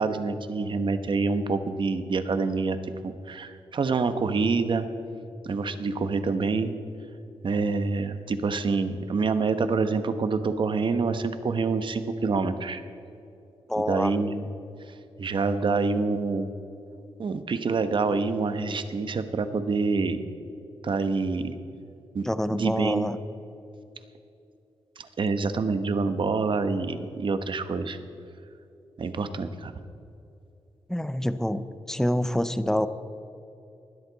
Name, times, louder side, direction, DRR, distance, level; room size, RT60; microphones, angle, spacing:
voice 1, 0.0-2.8 3.0-4.9 5.4-6.7 7.4-12.8 13.8-14.4 15.2-16.5 17.2-20.2 20.8-21.5 22.1-23.1 25.0-28.0 29.0-29.7, right 4 dB, 55° right, 10 dB, 1.0 m, -26 dB
voice 2, 13.7-14.1 22.2-23.2 30.9-32.9, left 1 dB, 5° left, 12 dB, 0.6 m, -26 dB
19.5 x 13.0 x 4.0 m, 2.8 s
wide cardioid pair, 110°, 10 cm